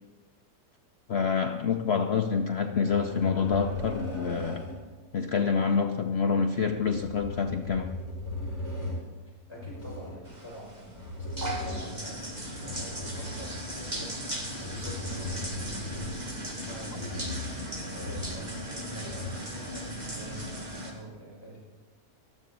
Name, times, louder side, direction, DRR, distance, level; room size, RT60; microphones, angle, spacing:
voice 1, 1.1-4.7 5.1-7.9, left 6 dB, 65° left, 6 dB, 0.6 m, -27 dB
sound 1, 2.6-4.9 6.6-9.0 9.5-10.2 10.9-12.0 12.4-13.7 14.3-16.4 16.9-17.6 18.0-18.5 18.8-19.5 20.4-20.5, left 2 dB, 40° left, 6.2 m, -37 dB
voice 2, 9.5-17.3 17.9-21.6, right 1 dB, 15° left, -6 dB, 6.0 m, -45 dB
sound 2, 10.2-20.9, right 1 dB, 25° right, 1.8 m, -37 dB
19.0 x 13.5 x 4.0 m, 1.2 s
omnidirectional pair, 1.8 m